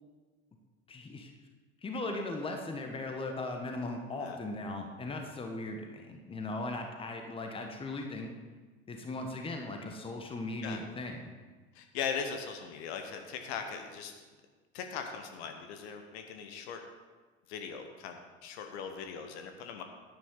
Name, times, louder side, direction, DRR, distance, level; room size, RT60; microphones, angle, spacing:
voice 1, 0.9-1.3 1.8-8.3 8.9-11.3, left 2 dB, 15° left, 3 dB, 1.2 m, -38 dB
voice 2, 11.7-14.1 14.7-16.8 17.5-19.8, left 6 dB, 50° left, 5 dB, 1.2 m, -39 dB
10.0 x 9.8 x 3.9 m, 1.4 s
figure-of-eight pair, 75°, 40 cm